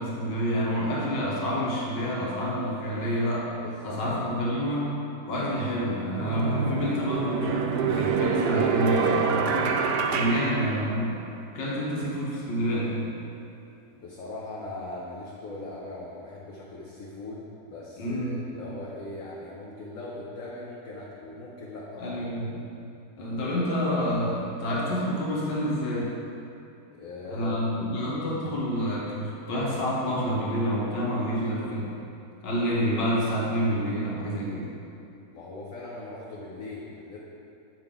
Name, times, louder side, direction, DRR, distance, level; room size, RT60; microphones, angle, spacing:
voice 1, 0.0-3.5 3.8-4.9 5.3-9.7 10.1-11.2 11.5-13.1 18.0-18.5 22.0-22.6 23.2-26.1 27.3-32.0 32.4-34.7, equal, 80° left, -5 dB, 1.9 m, -28 dB
voice 2, 3.6-4.3 13.9-22.2 26.9-27.6 35.3-37.2, left 2 dB, 55° left, -5 dB, 1.1 m, -40 dB
sound 1, 5.4-5.5 6.2-11.4, right 6 dB, 75° right, 1.1 m, -27 dB
8.4 x 5.9 x 3.7 m, 2.6 s
omnidirectional pair, 1.9 m